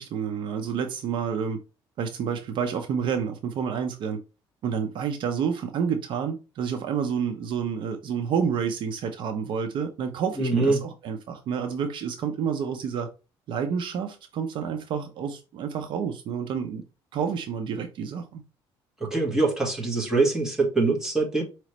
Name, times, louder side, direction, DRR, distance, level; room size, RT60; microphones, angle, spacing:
voice 1, 0.0-1.6 2.0-4.2 4.6-13.1 13.5-16.8 17.1-18.4, right 7 dB, 55° right, 0.6 m, -29 dB
voice 2, 10.4-10.8 19.0-21.4, right 3 dB, 5° right, 1.4 m, -23 dB
4.9 x 3.1 x 3.0 m
cardioid pair, 155°, 10 cm